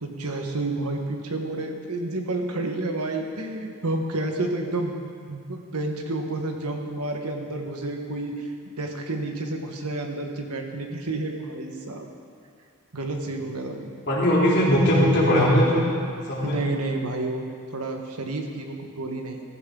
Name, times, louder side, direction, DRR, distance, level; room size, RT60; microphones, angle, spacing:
voice 1, 0.0-4.9 5.3-12.1 12.9-13.9 16.4-19.4, right 2 dB, 85° right, 3 dB, 1.5 m, -30 dB
voice 2, 14.1-15.9 16.3-16.6, equal, 50° left, -6 dB, 3.4 m, -19 dB
15.5 x 14.0 x 3.9 m, 2.2 s
head